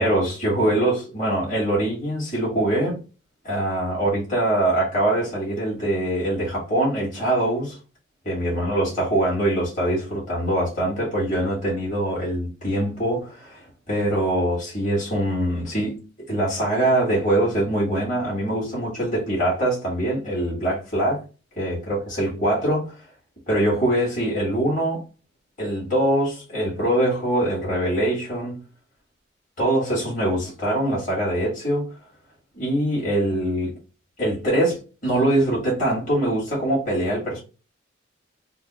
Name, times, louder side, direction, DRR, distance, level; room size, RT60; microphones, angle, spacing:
voice 1, 0.0-3.0 3.4-7.8 8.2-16.0 16.3-21.2 21.6-23.0 23.5-25.0 25.6-28.6 29.6-31.9 32.6-33.7 34.2-37.4, right 1 dB, 40° left, 1.8 m, -23 dB
3.9 x 2.0 x 4.1 m
head